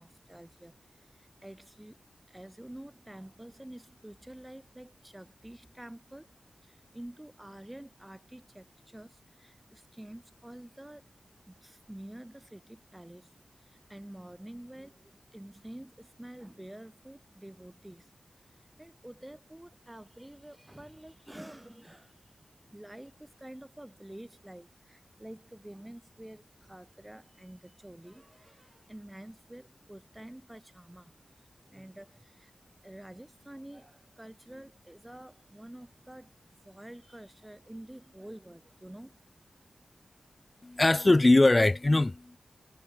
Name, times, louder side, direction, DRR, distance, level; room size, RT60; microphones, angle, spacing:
voice 1, 0.0-2.0 2.3-6.3 6.6-11.1 11.5-22.4 22.6-31.1 31.4-32.5 32.8-36.3 36.6-39.2, right 1 dB, 15° right, 1.6 m, -48 dB
voice 2, 40.6-42.4, left 2 dB, 35° left, 0.3 m, -22 dB
cardioid pair, 45°, 0 cm